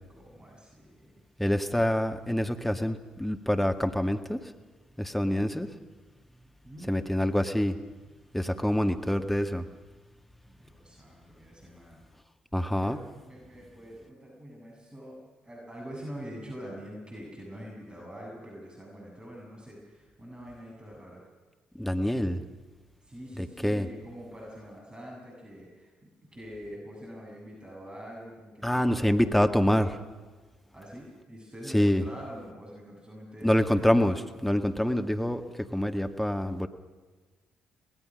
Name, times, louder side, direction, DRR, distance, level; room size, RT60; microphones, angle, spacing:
voice 1, 0.2-1.1 6.6-6.9 10.4-12.0 12.8-21.2 23.0-29.1 30.7-33.8, equal, 25° right, -2 dB, 7.9 m, -45 dB
voice 2, 1.4-4.4 5.0-5.7 6.9-7.8 8.3-9.7 12.5-13.0 21.8-22.4 23.4-23.9 28.6-30.0 31.7-32.0 33.4-36.7, equal, 5° left, 7 dB, 1.8 m, -26 dB
24.5 x 19.5 x 6.4 m, 1.3 s
figure-of-eight pair, 45°, 4 cm